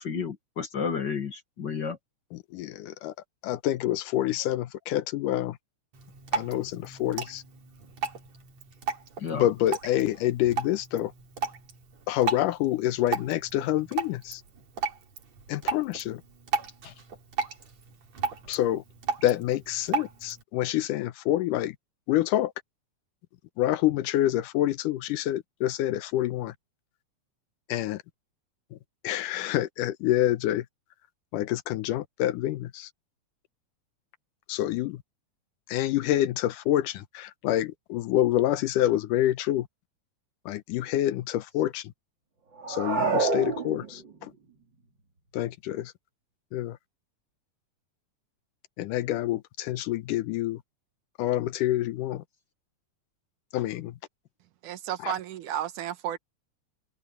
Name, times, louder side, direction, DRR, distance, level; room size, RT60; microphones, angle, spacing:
voice 1, 0.0-2.0 9.2-9.4, left 6 dB, 45° left, 1.8 m, -31 dB
voice 2, 2.3-3.1 3.4-5.6 6.3-7.4 9.3-11.1 12.1-14.4 15.5-16.2 16.8-16.9 18.5-18.8 19.2-21.8 22.1-22.5 23.6-26.6 27.7-28.0 28.7-28.8 29.0-30.7 31.3-32.9 34.5-35.0 35.7-39.7 40.5-41.9 42.7-44.3 45.3-45.9 46.5-46.8 48.8-50.6 51.2-52.2 53.5-54.0 55.0-55.1, left 13 dB, 90° left, 2.4 m, -27 dB
Drip, 5.9-20.4, right 5 dB, 55° right, 4.3 m, -35 dB
sound 1, 42.6-44.2, right 4 dB, 35° right, 3.7 m, -27 dB
voice 3, 54.6-56.2, right 11 dB, 75° right, 2.6 m, -32 dB
omnidirectional pair, 3.6 m